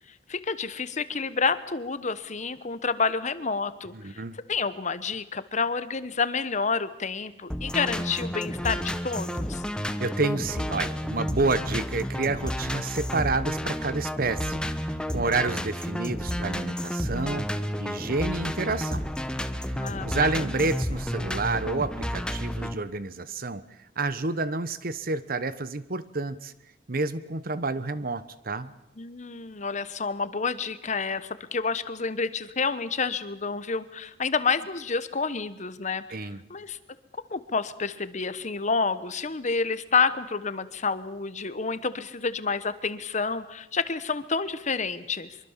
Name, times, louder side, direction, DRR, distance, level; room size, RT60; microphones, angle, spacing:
voice 1, 0.3-4.2 4.5-9.6 19.7-20.3 29.0-36.8 37.3-45.4, left 4 dB, 40° left, 13 dB, 1.2 m, -29 dB
voice 2, 3.9-4.4 10.0-17.5 17.8-19.1 19.7-23.7 24.0-26.5 26.9-28.7 36.1-36.4, right 3 dB, 50° right, 15 dB, 1.1 m, -29 dB
sound 1, 7.5-22.7, equal, 5° left, 1.1 m, -31 dB
24.0 x 23.0 x 7.4 m, 0.86 s
head